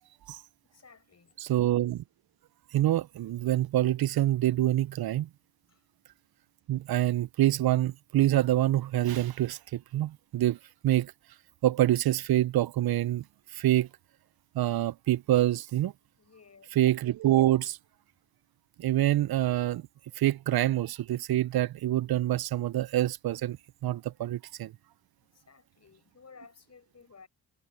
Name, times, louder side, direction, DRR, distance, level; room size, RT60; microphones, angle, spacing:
voice 1, 0.7-1.4 5.7-5.8 16.2-16.7 25.3-27.3, left 5 dB, 35° left, 6.1 m, -55 dB
voice 2, 1.4-2.0 2.7-5.3 6.7-10.6 10.8-11.1 11.6-13.2 13.5-13.9 14.5-15.9 16.7-17.8 18.8-19.8 20.2-23.6 23.8-24.7, right 14 dB, 55° right, 1.0 m, -26 dB
hypercardioid pair, 45°, 44 cm